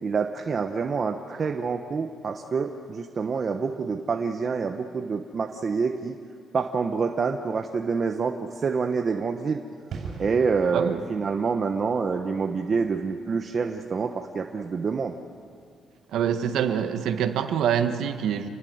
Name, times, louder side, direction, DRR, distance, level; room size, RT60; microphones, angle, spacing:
voice 1, 0.0-6.2 6.5-9.6 10.2-15.1, right 5 dB, 35° right, 4 dB, 1.0 m, -27 dB
sound 1, 9.9-16.4 16.7-16.8, right 4 dB, 55° right, 6.4 m, -44 dB
voice 2, 16.1-18.5, right 8 dB, 80° right, 7 dB, 1.6 m, -25 dB
28.0 x 20.5 x 8.0 m, 2.3 s
cardioid pair, 150°, 0 cm